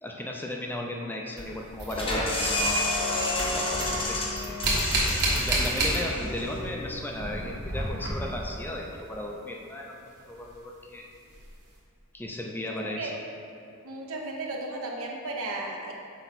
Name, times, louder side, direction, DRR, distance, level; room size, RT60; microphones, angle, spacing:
voice 1, 0.0-4.7 5.4-10.0 10.3-11.1 12.1-13.1, left 1 dB, 10° left, 0 dB, 0.4 m, -36 dB
sound 1, 1.4-3.0 3.3-6.5 6.7-8.5 10.4-10.5 11.3-11.5, right 1 dB, 50° right, 1.3 m, -30 dB
sound 2, 1.9-7.4, left 1 dB, 25° left, 0.9 m, -30 dB
voice 2, 13.8-15.9, right 2 dB, 65° right, 0 dB, 0.8 m, -34 dB
6.0 x 4.6 x 4.1 m, 2.6 s
head